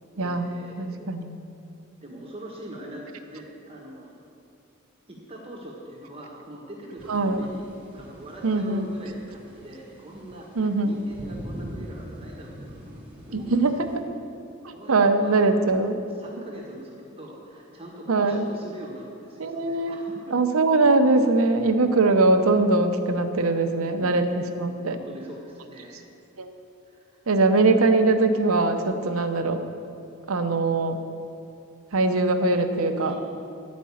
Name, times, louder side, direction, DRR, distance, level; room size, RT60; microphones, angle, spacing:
voice 1, 0.1-1.1 2.0-4.3 5.1-13.0 13.3-13.6 14.0-14.2 14.7-15.4 15.8-15.9 16.2-20.4 23.8-24.2 24.8-25.9 26.9-27.2 32.9-33.2, right 1 dB, 25° right, -3 dB, 1.4 m, -42 dB
voice 2, 0.8-1.3 7.1-7.5 8.4-8.9 10.6-10.9 13.3-13.9 14.6-16.0 18.1-18.5 19.4-20.0 20.3-25.0 26.4-26.5 27.3-29.6 30.3-31.0 31.9-33.2, right 3 dB, 90° right, 7 dB, 0.8 m, -22 dB
sound 1, 7.0-14.0, equal, 10° right, 2.1 m, -43 dB
11.0 x 5.2 x 8.5 m, 2.5 s
head